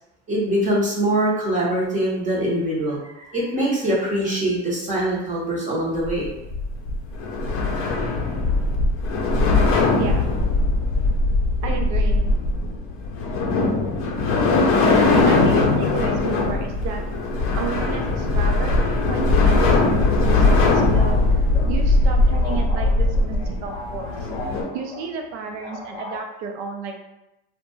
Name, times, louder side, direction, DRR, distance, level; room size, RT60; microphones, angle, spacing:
voice 1, 0.3-6.3, right 1 dB, 20° right, -5 dB, 0.7 m, -23 dB
sound 1, 5.9-24.6, left 3 dB, 40° left, 0.5 m, -20 dB
voice 2, 9.8-10.3 11.6-12.3 15.2-17.0 17.5-18.8 19.1-21.2 21.7-24.3 24.7-27.0, right 6 dB, 75° right, 4 dB, 0.6 m, -32 dB
sound 2, 20.0-26.2, left 2 dB, 15° left, 0.9 m, -38 dB
2.5 x 2.1 x 3.0 m, 0.90 s
supercardioid pair, 135°, 35 cm